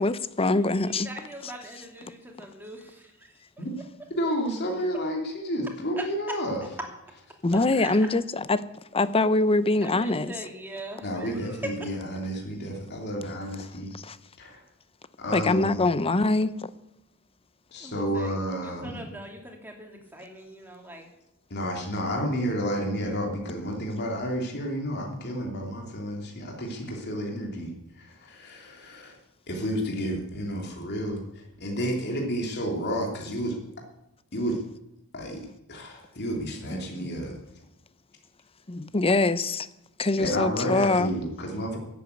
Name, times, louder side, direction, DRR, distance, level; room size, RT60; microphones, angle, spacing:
voice 1, 0.0-1.1 7.4-8.6 8.9-10.3 13.9-14.2 15.3-16.5 36.7-36.8 38.7-39.7 40.0-41.1, left 2 dB, 25° left, 0.7 m, -23 dB
voice 2, 0.8-3.4 7.8-8.0 9.8-12.2 17.8-21.1, right 1 dB, 10° right, 2.9 m, -41 dB
voice 3, 4.1-6.6 11.0-13.9 14.4-14.6 15.2-15.9 17.7-19.1 21.5-29.2 29.5-33.6 34.3-34.6 35.1-35.4 35.7-37.4 40.2-41.8, equal, 50° left, 2.9 m, -31 dB
14.0 x 8.4 x 9.5 m
head